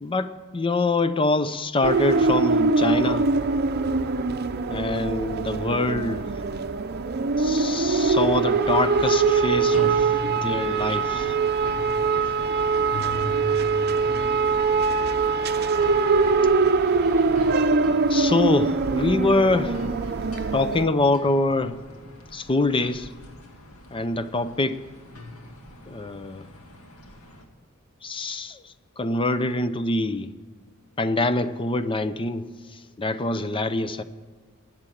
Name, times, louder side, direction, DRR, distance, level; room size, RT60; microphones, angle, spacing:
voice 1, 0.0-3.3 4.7-6.3 7.4-11.3 18.1-19.8 20.5-21.8 22.3-23.1 23.9-24.8 25.9-26.4 28.0-28.6 29.0-30.3 31.0-32.5 33.0-34.0, left 2 dB, 25° left, 0.6 m, -25 dB
sound 1, 1.8-20.9, right 4 dB, 50° right, 0.6 m, -23 dB
sound 2, 9.5-27.4, left 1 dB, 85° left, 2.0 m, -41 dB
18.5 x 7.4 x 10.0 m
head